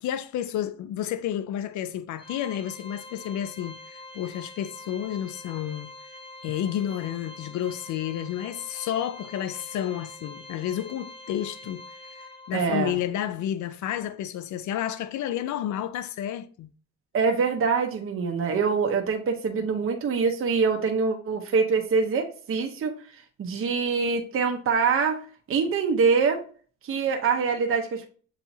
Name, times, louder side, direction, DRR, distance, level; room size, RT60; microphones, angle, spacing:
voice 1, 0.0-5.9 6.4-16.7, left 11 dB, 75° left, 0.5 m, -31 dB
Organ, 2.2-12.8, left 2 dB, 15° left, 0.9 m, -45 dB
voice 2, 12.5-13.0 17.1-22.9 23.4-25.2 25.5-26.4 26.8-28.1, right 5 dB, 45° right, 0.8 m, -24 dB
7.1 x 2.7 x 2.7 m
cardioid pair, 90°, 30 cm